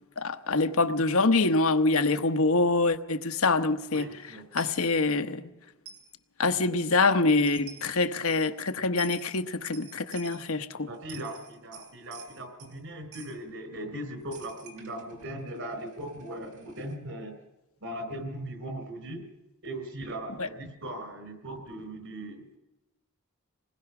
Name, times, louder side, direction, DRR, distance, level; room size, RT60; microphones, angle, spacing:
voice 1, 0.2-4.1 4.5-5.5 6.4-10.9 20.4-20.5, left 3 dB, 70° left, 1.1 m, -25 dB
voice 2, 3.9-4.5 10.9-17.4 17.8-19.3 19.6-22.6, right 1 dB, 65° right, 4.1 m, -39 dB
Coin (dropping), 4.6-4.8 5.9-6.1 7.2-7.3 7.5-8.0 9.0-9.3 9.7-10.5 10.9-12.8 13.1-13.4 14.3-17.0, right 6 dB, 85° right, 3.6 m, -48 dB
27.0 x 20.0 x 6.0 m
head